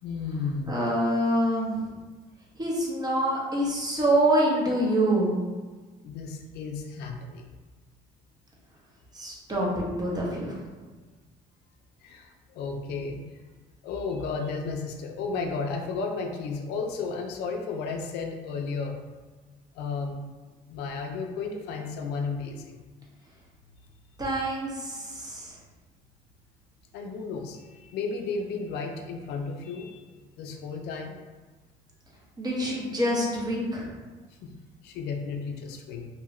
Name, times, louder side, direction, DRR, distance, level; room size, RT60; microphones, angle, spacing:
voice 1, 0.0-0.8 6.0-7.5 9.2-9.4 12.0-13.2 13.8-19.0 19.8-20.2 20.7-22.8 26.9-30.0 30.4-31.2 34.4-34.5 34.8-36.1, left 4 dB, 85° left, 3 dB, 0.4 m, -33 dB
voice 2, 0.7-1.8 2.6-5.4 9.1-10.5 24.2-25.5 32.4-33.9, right 1 dB, 25° right, -4 dB, 0.8 m, -26 dB
2.7 x 2.3 x 3.0 m, 1.3 s
cardioid pair, 110°, 17 cm